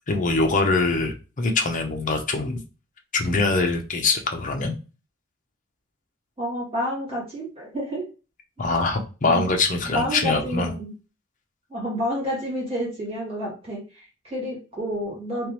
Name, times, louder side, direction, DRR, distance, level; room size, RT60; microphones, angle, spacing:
voice 1, 0.1-2.6 3.1-4.7 8.6-10.7, left 3 dB, 40° left, 4 dB, 0.7 m, -23 dB
voice 2, 6.4-8.0 9.3-9.4 9.9-10.9 11.7-15.5, equal, 30° right, -5 dB, 2.0 m, -29 dB
3.6 x 3.0 x 3.0 m, 0.32 s
head